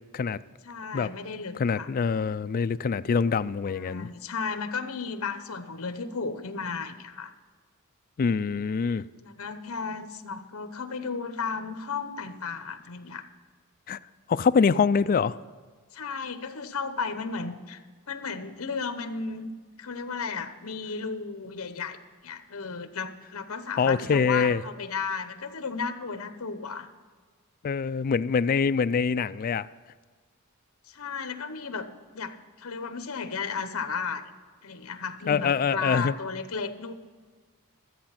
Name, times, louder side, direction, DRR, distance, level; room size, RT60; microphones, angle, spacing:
voice 1, 0.6-1.9 3.7-7.3 9.2-13.2 15.9-17.8 18.1-19.5 19.8-22.0 22.2-26.9 30.8-31.9 32.1-34.2 34.6-36.9, left 5 dB, 65° left, 9 dB, 0.9 m, -34 dB
voice 2, 1.6-4.1 8.2-9.1 13.9-14.0 14.3-15.4 23.8-24.6 27.6-29.7 35.3-36.1, left 5 dB, 40° left, 14 dB, 0.3 m, -24 dB
13.0 x 8.5 x 5.9 m, 1.5 s
head